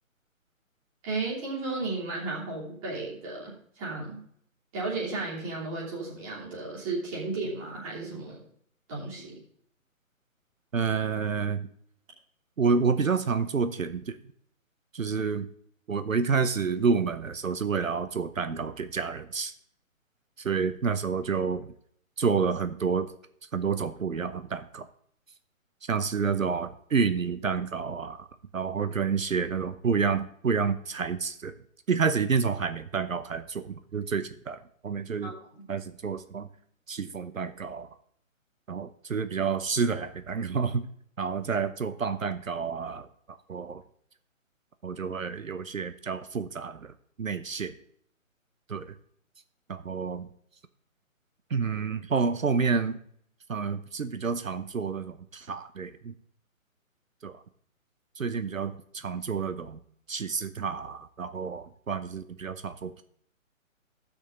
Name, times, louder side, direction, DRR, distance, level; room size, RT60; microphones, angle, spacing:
voice 1, 1.0-4.2 4.7-8.4 8.9-9.4 35.2-35.3, right 3 dB, 25° right, -5 dB, 3.2 m, -34 dB
voice 2, 10.7-11.7 12.6-14.2 14.9-15.5 15.9-19.5 20.4-21.7 22.2-23.1 23.5-24.9 25.9-28.3 28.5-31.5 31.9-35.3 35.7-36.5 36.9-37.9 38.7-40.9 41.2-43.8 44.8-47.7 48.7-48.9 49.7-50.3 51.5-53.0 53.5-56.1 57.2-57.4 58.2-59.8 60.1-63.0, right 5 dB, 70° right, 11 dB, 0.9 m, -29 dB
15.0 x 6.5 x 3.8 m, 0.63 s
figure-of-eight pair, 140°, 41 cm